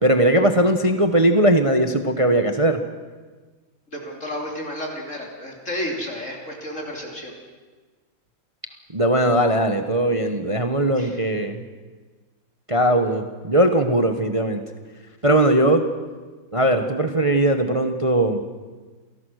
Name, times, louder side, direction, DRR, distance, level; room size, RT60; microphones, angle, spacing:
voice 1, 0.0-2.8 8.9-11.6 12.7-14.6 15.2-15.9 16.5-18.4, right 1 dB, 25° right, 7 dB, 0.8 m, -19 dB
voice 2, 3.9-7.3 11.0-11.2 12.7-13.0, left 1 dB, 35° left, 0 dB, 3.6 m, -32 dB
28.0 x 18.0 x 6.4 m, 1.3 s
omnidirectional pair, 2.2 m